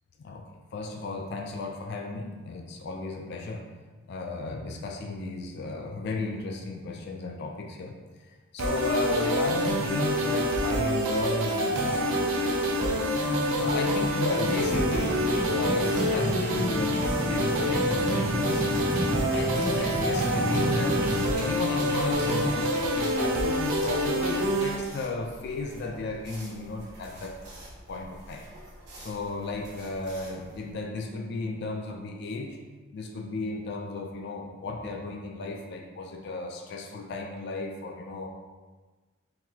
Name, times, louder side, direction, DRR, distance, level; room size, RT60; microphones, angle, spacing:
voice 1, 0.7-3.7 4.1-7.9 8.2-13.0 13.5-18.8 19.3-21.0 21.3-27.4 27.9-28.5 29.0-32.6 32.9-38.3, left 3 dB, 55° left, 2 dB, 0.3 m, -34 dB
sound 1, 8.6-24.8, equal, 80° right, 0.5 m, -26 dB
sound 2, 14.4-30.7, equal, 55° right, 1.1 m, -33 dB
3.9 x 2.6 x 2.8 m, 1.3 s
head